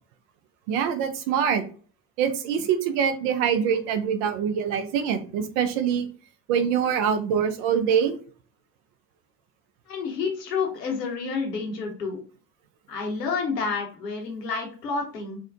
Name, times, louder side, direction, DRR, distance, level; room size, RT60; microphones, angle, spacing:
voice 1, 0.7-1.6 2.2-6.1 6.5-8.2, right 7 dB, 55° right, 8 dB, 0.6 m, -24 dB
voice 2, 9.9-12.2 12.9-15.4, left 4 dB, 85° left, 1 dB, 0.9 m, -29 dB
3.4 x 2.2 x 2.4 m, 0.40 s
figure-of-eight pair, 60°, 48 cm